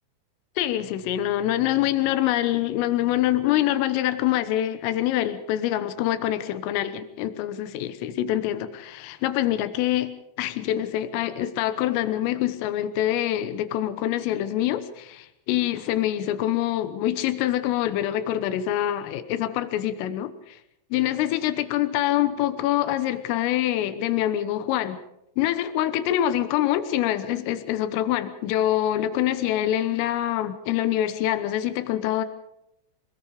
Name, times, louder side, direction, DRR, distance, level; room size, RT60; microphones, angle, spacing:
voice 1, 0.6-10.1 10.4-20.6 20.9-25.0 25.4-32.3, left 12 dB, 85° left, 11 dB, 3.8 m, -25 dB
26.5 x 19.5 x 5.1 m, 0.81 s
omnidirectional pair, 5.8 m